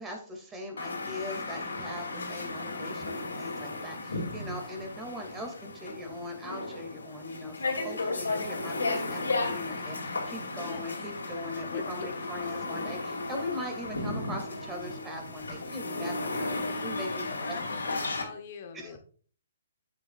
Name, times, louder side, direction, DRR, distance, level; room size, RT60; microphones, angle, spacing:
voice 1, 0.0-16.5 16.8-17.6 17.8-17.9 18.7-19.0, left 1 dB, 15° right, 3 dB, 2.2 m, -40 dB
sound 1, 0.8-18.2, left 3 dB, 85° left, 2.5 m, -35 dB
voice 2, 10.6-10.9 11.7-12.3 16.5-19.0, left 6 dB, 50° left, 6 dB, 1.0 m, -43 dB
9.2 x 7.9 x 2.4 m, 0.43 s
hypercardioid pair, 135°, 0 cm